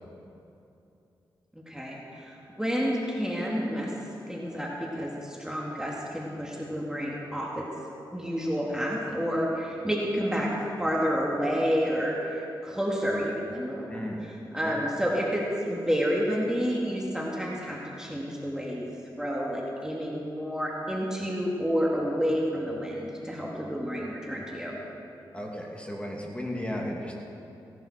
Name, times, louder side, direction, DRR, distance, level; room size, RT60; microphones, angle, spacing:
voice 1, 1.7-3.9 4.3-7.7 8.1-10.5 10.8-18.9 19.2-24.8, equal, 5° right, -3 dB, 2.4 m, -29 dB
voice 2, 13.9-14.3 14.6-14.7 25.3-27.1, equal, 15° left, -1 dB, 2.7 m, -34 dB
17.5 x 11.5 x 4.5 m, 2.8 s
supercardioid pair, 45°, 9 cm